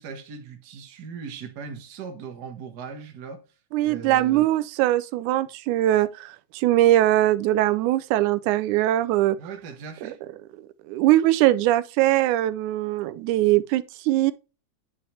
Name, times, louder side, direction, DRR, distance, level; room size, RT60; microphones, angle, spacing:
voice 1, 0.0-3.4 3.8-4.5 9.4-10.2, right 5 dB, 45° right, 1.4 m, -39 dB
voice 2, 3.7-9.4 10.9-14.3, right 15 dB, 85° right, 2.0 m, -21 dB
9.5 x 5.5 x 3.3 m
omnidirectional pair, 3.4 m